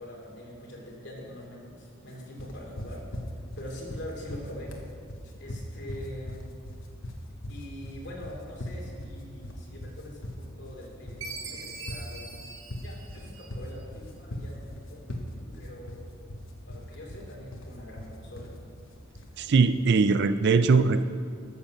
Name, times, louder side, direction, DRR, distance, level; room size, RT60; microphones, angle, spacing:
voice 1, 0.0-3.0 3.6-4.7 5.4-6.4 7.5-12.3 12.7-15.0 15.5-16.3 16.7-18.7, left 1 dB, 55° left, -2 dB, 2.8 m, -43 dB
sound 1, 2.4-19.4, equal, 80° left, 1.3 m, -39 dB
Chime, 11.2-13.8, right 3 dB, 85° right, 1.4 m, -42 dB
voice 2, 19.4-21.0, right 4 dB, 55° right, 12 dB, 0.4 m, -21 dB
13.0 x 6.7 x 7.1 m, 2.2 s
head